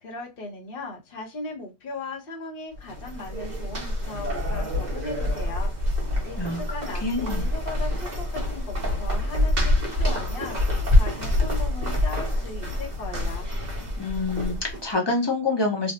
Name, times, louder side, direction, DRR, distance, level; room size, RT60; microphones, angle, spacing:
voice 1, 0.0-13.5, left 3 dB, 55° left, 1.1 m, -38 dB
sound 1, 2.8-14.9, left 1 dB, 40° right, 1.1 m, -26 dB
voice 2, 7.0-7.5 14.0-15.9, left 3 dB, 25° left, 0.9 m, -26 dB
3.2 x 2.3 x 2.7 m
omnidirectional pair, 1.2 m